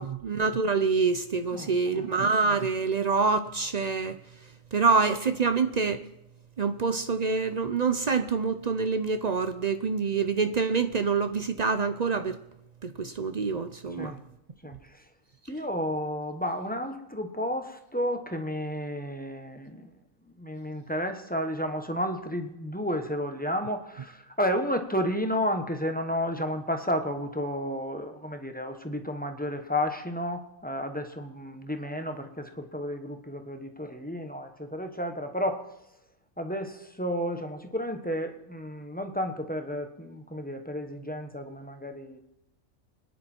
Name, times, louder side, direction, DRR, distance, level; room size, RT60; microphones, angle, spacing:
voice 1, 0.0-4.2 4.7-6.0 6.6-12.4 12.8-14.1, right 4 dB, 55° right, 0.4 m, -26 dB
voice 2, 1.5-2.1 14.0-14.2 14.6-15.0 15.5-19.9 20.4-35.7 36.4-42.2, equal, 5° left, 1.0 m, -32 dB
25.5 x 10.5 x 4.4 m
omnidirectional pair, 1.5 m